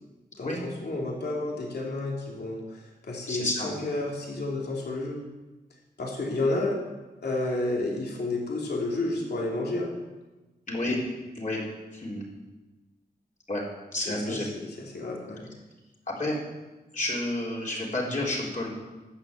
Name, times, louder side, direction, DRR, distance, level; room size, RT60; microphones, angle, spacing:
voice 1, 0.4-5.2 6.0-6.8 7.2-9.9 14.1-15.5, left 2 dB, 75° left, -2 dB, 2.8 m, -31 dB
voice 2, 3.3-3.7 10.7-11.0 11.4-11.6 11.9-12.2 13.5-13.6 13.9-14.5 16.1-16.4 16.9-18.7, left 1 dB, 50° left, -4 dB, 4.0 m, -30 dB
11.5 x 8.1 x 8.0 m, 1.1 s
wide cardioid pair, 105°, 17 cm